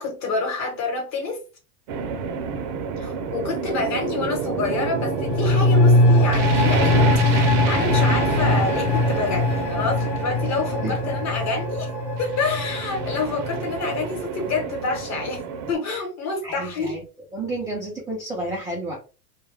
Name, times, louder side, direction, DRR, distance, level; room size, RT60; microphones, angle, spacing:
voice 1, 0.0-1.4 3.0-11.9 12.2-16.9, left 3 dB, 35° left, 1.1 m, -27 dB
sound 1, 1.9-15.7, right 6 dB, 50° right, 0.6 m, -28 dB
sound 2, 4.7-14.1 14.4-14.5, left 2 dB, 60° left, 0.6 m, -22 dB
voice 2, 16.4-17.0 17.3-19.0, right 2 dB, 10° right, 0.3 m, -30 dB
2.2 x 2.2 x 3.2 m
supercardioid pair, 125°, 46 cm